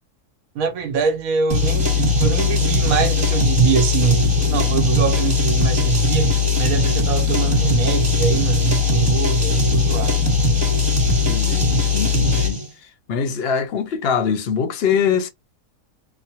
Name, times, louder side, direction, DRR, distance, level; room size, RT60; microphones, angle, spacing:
voice 1, 0.5-10.2, right 6 dB, 75° right, 1.3 m, -23 dB
sound 1, 1.5-12.7, left 4 dB, 30° right, 1.4 m, -19 dB
voice 2, 11.3-12.6 13.1-15.3, left 6 dB, 55° left, 0.7 m, -23 dB
3.1 x 2.1 x 2.7 m
omnidirectional pair, 1.5 m